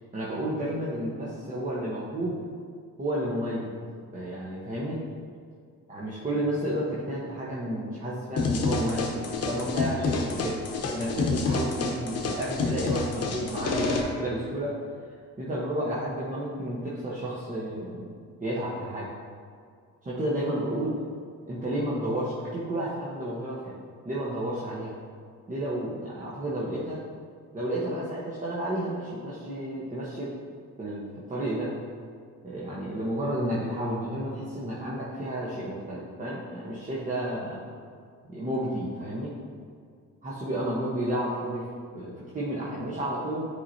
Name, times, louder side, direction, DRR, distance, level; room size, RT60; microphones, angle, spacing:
voice 1, 0.1-2.4 3.0-3.7 4.1-5.0 5.9-10.6 10.9-14.7 15.4-18.1 18.4-19.1 20.0-20.9 21.5-23.7 24.0-24.9 25.5-27.0 27.5-30.3 30.8-31.0 31.3-31.7 32.4-37.6 38.3-39.3 40.2-41.7 41.9-43.5, right 1 dB, 25° right, -6 dB, 1.1 m, -31 dB
sound 1, 8.4-14.0, left 3 dB, 55° left, 1.0 m, -28 dB
8.5 x 4.8 x 2.8 m, 2.1 s
cardioid pair, 90°, 30 cm